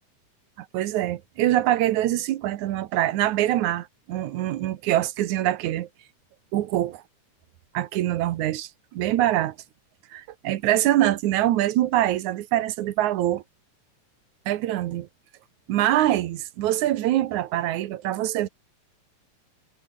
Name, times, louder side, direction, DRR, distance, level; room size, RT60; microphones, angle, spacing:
voice 1, 0.6-5.9 6.5-7.0 7.7-9.6 10.1-13.4 14.5-15.1 15.7-18.5, right 13 dB, 70° right, 2.2 m, -24 dB
omnidirectional pair, 3.7 m